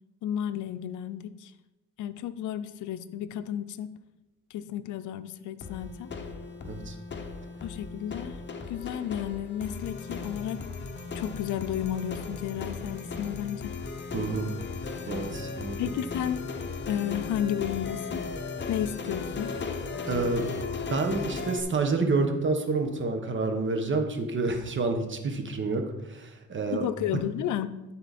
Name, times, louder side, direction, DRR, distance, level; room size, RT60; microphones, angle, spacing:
voice 1, 0.2-1.5 2.0-3.9 4.5-6.1 7.6-8.4 8.7-10.6 11.1-13.8 15.8-16.4 16.9-18.2 18.7-19.5 26.7-27.7, left 10 dB, 75° left, 12 dB, 0.6 m, -32 dB
sound 1, 5.6-21.6, left 4 dB, 40° left, 1.0 m, -36 dB
voice 2, 6.6-6.9 14.1-14.5 15.1-15.8 20.1-20.5 20.9-26.8, right 3 dB, 40° right, 5 dB, 1.4 m, -28 dB
13.0 x 4.4 x 4.2 m, 0.99 s
cardioid pair, 90°, 30 cm